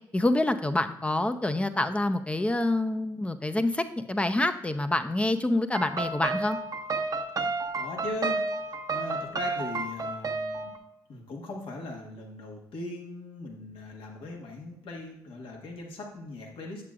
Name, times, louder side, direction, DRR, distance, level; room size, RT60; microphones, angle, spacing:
voice 1, 0.1-6.6, left 1 dB, 10° left, 9 dB, 0.7 m, -27 dB
sound 1, 5.7-10.8, right 3 dB, 40° right, 0.8 m, -31 dB
voice 2, 7.3-8.4 8.9-10.7 11.1-16.9, left 2 dB, 70° left, 0 dB, 1.5 m, -39 dB
8.5 x 7.4 x 2.4 m, 0.81 s
supercardioid pair, 55°, 10 cm